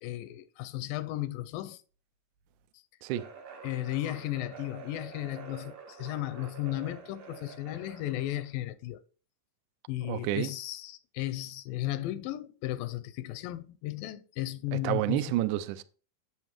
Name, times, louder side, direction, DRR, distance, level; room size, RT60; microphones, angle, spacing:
voice 1, 0.0-1.8 3.6-9.0 9.9-15.4, left 15 dB, 85° left, 2.2 m, -35 dB
sound 1, 3.1-8.5, right 5 dB, 60° right, 1.9 m, -48 dB
voice 2, 10.1-10.5 14.7-15.8, right 14 dB, 80° right, 1.9 m, -29 dB
8.0 x 7.7 x 3.0 m
omnidirectional pair, 3.9 m